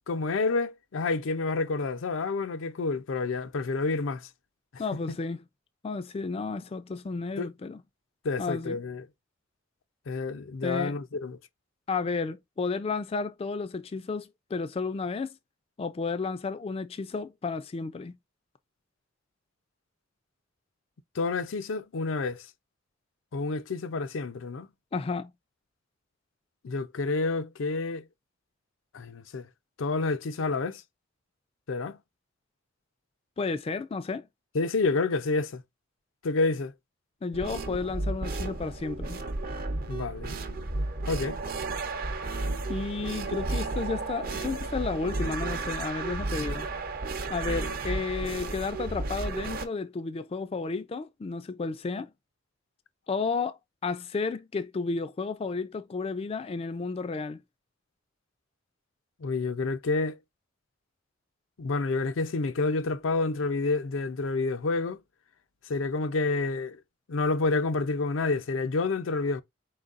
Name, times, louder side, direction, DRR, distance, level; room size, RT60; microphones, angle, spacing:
voice 1, 0.1-4.3 5.1-5.2 7.4-7.5 8.2-9.0 10.1-11.4 21.2-22.5 23.3-24.7 26.6-28.0 28.9-29.5 29.8-30.8 31.7-32.0 34.5-35.6 36.2-36.7 39.9-40.4 41.1-41.4 46.4-46.5 59.2-60.2 61.6-65.0 65.7-66.8 67.1-69.4, left 3 dB, 85° left, 0.5 m, -29 dB
voice 2, 4.8-5.4 5.8-7.8 8.4-8.8 10.6-11.0 11.9-15.3 15.8-18.2 24.9-25.3 33.4-34.3 37.2-39.2 42.7-46.7 47.3-52.1 53.1-57.4, left 4 dB, 30° left, 0.3 m, -32 dB
sound 1, 37.3-49.7, right 2 dB, 50° right, 0.7 m, -33 dB
4.5 x 3.9 x 2.4 m
head